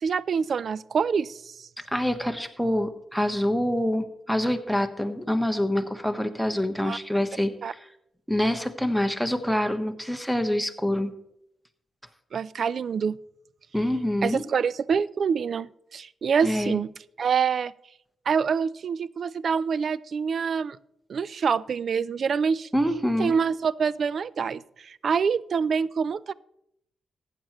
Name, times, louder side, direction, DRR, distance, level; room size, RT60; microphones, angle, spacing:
voice 1, 0.0-1.7 6.9-7.0 7.6-7.7 12.3-13.2 14.2-16.9 17.2-17.7 18.3-20.8 21.1-22.7 23.2-26.3, right 6 dB, 60° right, 20 dB, 0.3 m, -26 dB
voice 2, 1.9-7.9 8.3-11.1 13.7-14.4 16.4-16.8 22.7-23.3, left 1 dB, ahead, 9 dB, 1.2 m, -26 dB
15.0 x 9.0 x 3.1 m, 0.78 s
cardioid pair, 60°, 0 cm